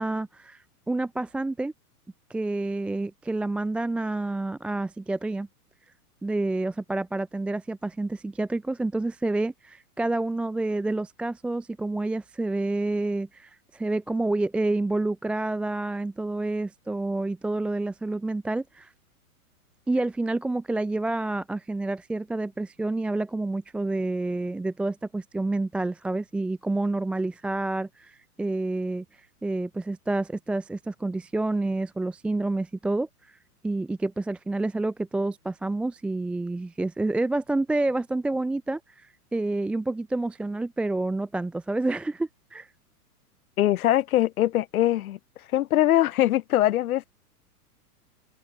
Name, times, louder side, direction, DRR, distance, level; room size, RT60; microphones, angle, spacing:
voice 1, 0.0-1.7 2.3-5.5 6.2-18.9 19.9-29.0 29.4-33.4 33.6-42.7, right 2 dB, 5° right, 0.4 m, -28 dB
voice 2, 43.6-45.2 45.5-47.1, left 13 dB, 65° left, 1.8 m, -22 dB
hypercardioid pair, 135°, 46 cm